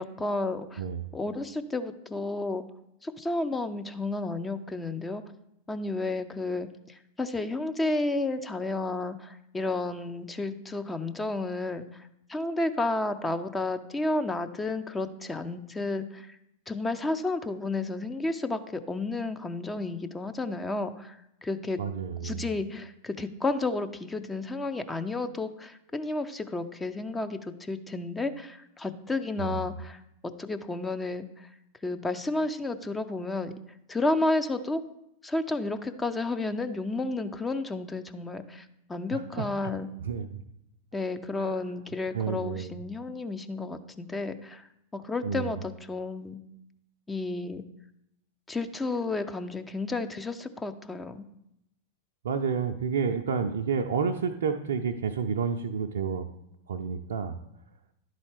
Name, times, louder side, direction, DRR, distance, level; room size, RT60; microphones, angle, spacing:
voice 1, 0.0-0.8 1.1-2.6 3.0-5.2 5.7-16.3 16.7-21.8 22.2-31.5 31.8-33.5 33.9-34.8 35.2-39.9 40.9-44.7 44.9-46.4 47.1-47.6 48.5-51.2, left 2 dB, 10° left, 9 dB, 0.5 m, -32 dB
voice 2, 0.8-1.1 21.8-22.5 29.4-29.7 39.1-39.5 40.0-40.4 41.4-41.5 42.1-42.7 45.2-45.6 52.2-56.3 56.7-57.4, right 6 dB, 65° right, 4 dB, 0.4 m, -30 dB
11.0 x 4.0 x 3.3 m, 0.82 s
figure-of-eight pair, 90°, 0 cm